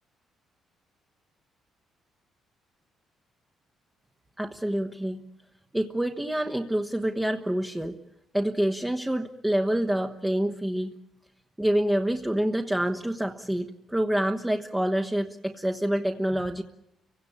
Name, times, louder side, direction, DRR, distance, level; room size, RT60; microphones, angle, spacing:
voice 1, 4.4-5.2 5.7-8.0 8.3-10.9 11.6-16.6, right 1 dB, 10° right, 4 dB, 1.3 m, -27 dB
30.0 x 17.5 x 8.6 m, 0.86 s
cardioid pair, 90°, 0 cm